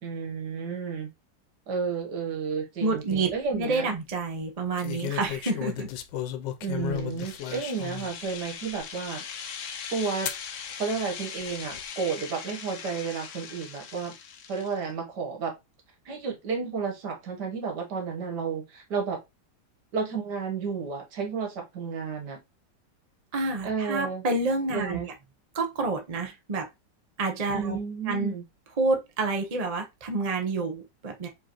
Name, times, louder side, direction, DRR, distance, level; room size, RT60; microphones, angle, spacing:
voice 1, 0.0-1.1 1.7-3.9 6.6-9.2 9.9-10.3 10.8-14.1 14.5-15.5 16.1-19.2 19.9-22.4 23.6-24.2 24.7-25.1 27.5-28.4, right 5 dB, 70° right, 1.8 m, -32 dB
voice 2, 2.8-5.9 23.3-25.1 25.5-26.7 27.2-27.8 28.1-28.3 28.8-31.3, right 3 dB, 35° right, 0.6 m, -28 dB
sound 1, 3.1-3.5 4.8-8.1 8.7-8.8 10.3-10.5 11.4-11.8, left 11 dB, 85° left, 1.3 m, -34 dB
sound 2, 7.0-14.8, left 7 dB, 65° left, 0.8 m, -40 dB
4.7 x 3.7 x 3.0 m
omnidirectional pair, 1.9 m